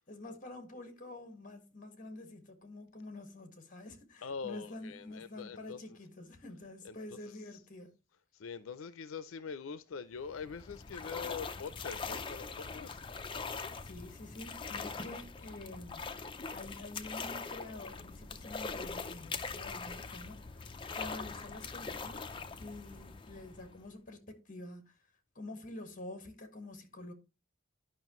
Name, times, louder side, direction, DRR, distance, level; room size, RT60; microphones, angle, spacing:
voice 1, 0.1-7.9 13.8-16.0 16.5-25.0 25.3-27.1, left 2 dB, 40° left, 1.6 m, -48 dB
voice 2, 4.2-6.0 6.8-7.6 8.3-13.0, left 5 dB, 85° left, 0.5 m, -44 dB
sound 1, 10.2-23.9, left 4 dB, 25° left, 0.5 m, -42 dB
11.0 x 5.6 x 3.0 m
head